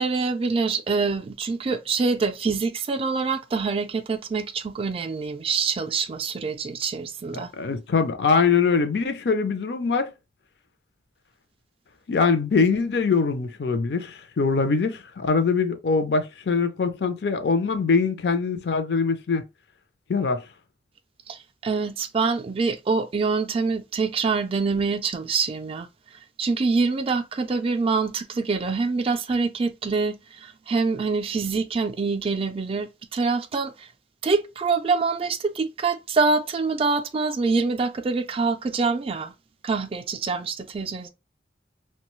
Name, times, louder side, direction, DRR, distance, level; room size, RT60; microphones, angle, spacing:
voice 1, 0.0-7.5 21.3-25.9 26.4-33.9 34.2-39.3 39.6-41.1, right 4 dB, 30° right, 0.3 m, -25 dB
voice 2, 7.6-10.1 12.1-19.4 20.1-20.4, left 4 dB, 70° left, 0.5 m, -23 dB
2.9 x 2.2 x 3.0 m
head